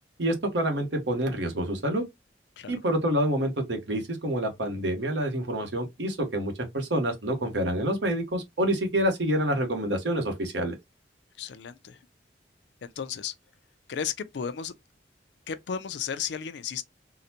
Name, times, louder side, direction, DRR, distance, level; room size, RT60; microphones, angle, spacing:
voice 1, 0.2-2.0 2.7-10.8, right 1 dB, 85° right, 1.1 m, -27 dB
voice 2, 11.4-12.0 12.8-13.3 13.9-14.7 15.5-16.8, left 7 dB, 70° left, 0.4 m, -34 dB
3.9 x 2.1 x 2.8 m
head